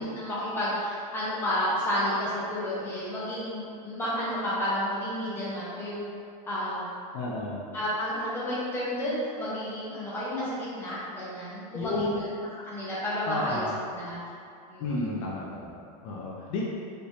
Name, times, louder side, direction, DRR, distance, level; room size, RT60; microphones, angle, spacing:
voice 1, 0.0-6.1 6.5-6.9 7.7-12.3 12.6-14.2 14.7-15.1, equal, 10° left, -9 dB, 0.9 m, -31 dB
voice 2, 7.1-7.6 11.7-12.2 13.3-13.7 14.8-16.6, left 3 dB, 55° left, -4 dB, 0.6 m, -32 dB
3.3 x 3.0 x 2.7 m, 2.4 s
supercardioid pair, 140°, 19 cm